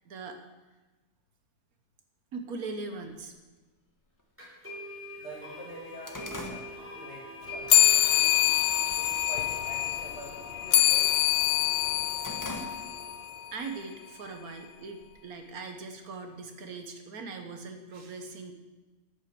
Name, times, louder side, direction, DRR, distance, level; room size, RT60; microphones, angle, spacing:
voice 1, 0.0-0.4 2.3-3.3 13.5-18.5, right 4 dB, 65° right, 6 dB, 1.5 m, -40 dB
sound 1, 3.2-3.3 4.2-4.3 4.7-4.8 5.2-7.6 8.0-8.3 8.7-9.2 9.5-9.8 10.1-11.4 11.7-13.2 13.6-13.7 14.6-15.5, left 1 dB, 15° left, 0.9 m, -43 dB
sound 2, 4.4-13.2, left 2 dB, 5° right, 4.2 m, -45 dB
voice 2, 5.2-6.7 6.9-8.0 8.9-11.2, right 1 dB, 45° left, -2 dB, 2.9 m, -45 dB
sound 3, 7.7-13.5, left 13 dB, 75° left, 0.5 m, -25 dB
9.7 x 8.1 x 6.9 m, 1.2 s
omnidirectional pair, 1.7 m